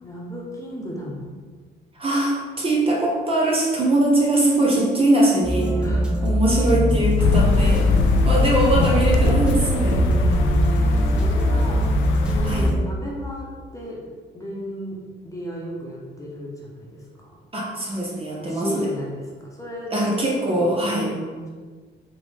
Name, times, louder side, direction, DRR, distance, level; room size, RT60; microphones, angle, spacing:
voice 1, 0.0-1.3 5.8-6.3 9.9-11.9 12.2-14.0 14.3-15.0 15.2-17.4 18.4-20.1 20.4-21.5, equal, 15° left, -4 dB, 1.2 m, -34 dB
voice 2, 2.0-5.8 6.2-7.9 8.2-10.1 12.4-12.7 17.5-18.9 19.9-21.1, right 1 dB, 30° right, -3 dB, 1.0 m, -21 dB
sound 1, 5.4-12.8, left 1 dB, 5° right, 0.7 m, -21 dB
sound 2, 7.2-12.7, left 2 dB, 85° left, 0.5 m, -22 dB
3.7 x 3.6 x 3.5 m, 1.5 s
cardioid pair, 90°, 20 cm